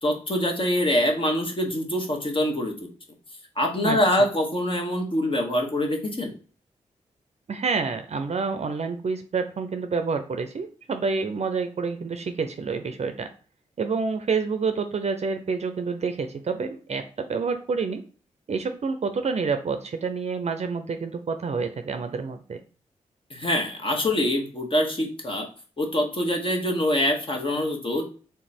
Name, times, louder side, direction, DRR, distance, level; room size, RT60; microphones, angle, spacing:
voice 1, 0.0-2.7 3.6-6.3 23.3-25.5 25.8-28.0, left 1 dB, 40° left, 2 dB, 1.5 m, -24 dB
voice 2, 3.8-4.3 7.5-13.3 13.8-18.0 18.5-22.6, right 4 dB, 50° right, 7 dB, 0.6 m, -28 dB
3.5 x 3.0 x 4.3 m, 0.39 s
supercardioid pair, 45°, 14 cm